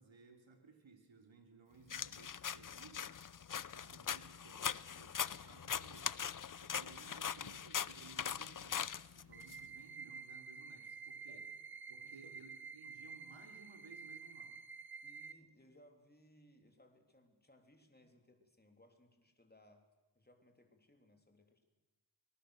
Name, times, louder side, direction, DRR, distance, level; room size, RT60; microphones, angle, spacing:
voice 1, 0.0-3.2 3.7-6.2 6.6-11.5 11.9-14.6, right 4 dB, 70° right, 3 dB, 3.2 m, -60 dB
sound 1, 1.9-9.6, left 8 dB, 45° left, 0.6 m, -41 dB
sound 2, 9.3-15.3, right 5 dB, 50° right, 1.2 m, -50 dB
voice 2, 12.0-12.3 15.0-19.9 20.1-21.6, left 1 dB, 20° left, 4 dB, 3.3 m, -66 dB
24.5 x 20.0 x 6.6 m, 1.2 s
wide cardioid pair, 70°, 48 cm